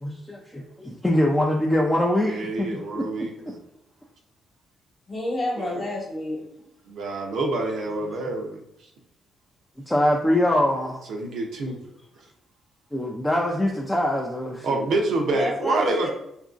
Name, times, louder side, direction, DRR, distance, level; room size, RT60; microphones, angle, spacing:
voice 1, 0.0-3.3 9.9-11.0 12.9-14.9, left 1 dB, 10° left, -1 dB, 0.4 m, -23 dB
voice 2, 2.2-3.6 5.6-5.8 6.9-8.6 11.1-11.8 14.6-16.1, right 2 dB, 75° right, 1 dB, 0.5 m, -27 dB
voice 3, 5.1-6.4 15.3-16.1, left 1 dB, 40° left, 0 dB, 0.9 m, -29 dB
2.8 x 2.5 x 2.4 m, 0.80 s
cardioid pair, 90°, 0 cm